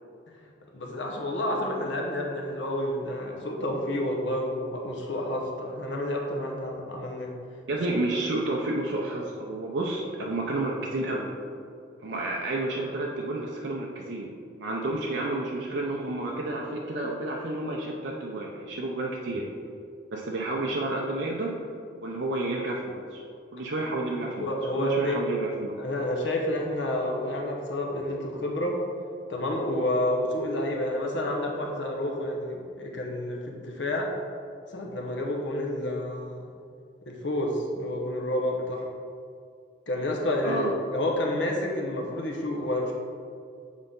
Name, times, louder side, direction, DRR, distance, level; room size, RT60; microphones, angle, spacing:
voice 1, 0.7-7.3 24.4-25.3 25.8-28.8 29.3-34.1 34.7-36.5 37.1-38.9 39.9-40.7 40.9-42.9, left 1 dB, 80° left, 0 dB, 0.9 m, -29 dB
voice 2, 7.7-11.3 12.0-19.5 20.1-21.6 21.9-23.2 23.5-25.8 40.4-40.7, right 2 dB, 75° right, -2 dB, 0.6 m, -30 dB
7.4 x 3.9 x 3.8 m, 2.4 s
head